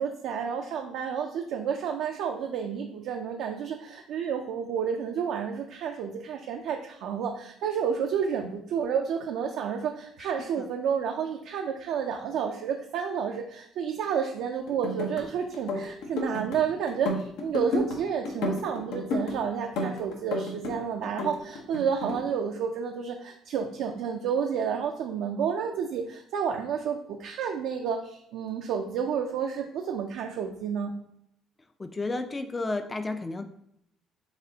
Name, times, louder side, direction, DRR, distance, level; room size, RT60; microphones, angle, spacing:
voice 1, 0.0-30.9, right 7 dB, 75° right, 3 dB, 0.4 m, -30 dB
sound 1, 14.7-15.2 15.5-16.6 16.9-18.0 18.2-19.3 19.8-20.8 21.0-22.2, left 2 dB, 85° left, 0.7 m, -31 dB
voice 2, 31.8-33.4, left 2 dB, 20° left, 8 dB, 0.3 m, -32 dB
4.0 x 3.6 x 2.7 m, 0.73 s
cardioid pair, 90°, 0 cm